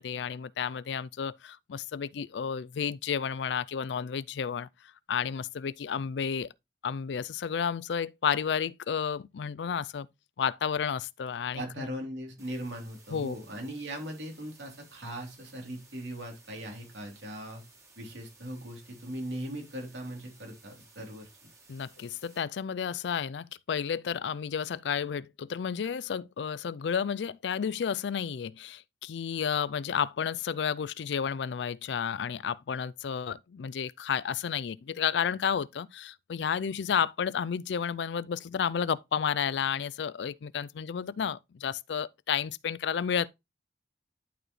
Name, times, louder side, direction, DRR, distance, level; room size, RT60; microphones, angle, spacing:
voice 1, 0.0-4.7 5.1-6.5 6.8-10.1 10.4-11.9 13.1-13.3 21.7-43.3, left 7 dB, 80° left, 0.4 m, -31 dB
voice 2, 11.5-17.6 18.0-21.3, right 1 dB, 90° right, 3.3 m, -39 dB
sound 1, 12.4-22.4, right 3 dB, 15° right, 1.7 m, -58 dB
11.0 x 4.9 x 3.1 m
head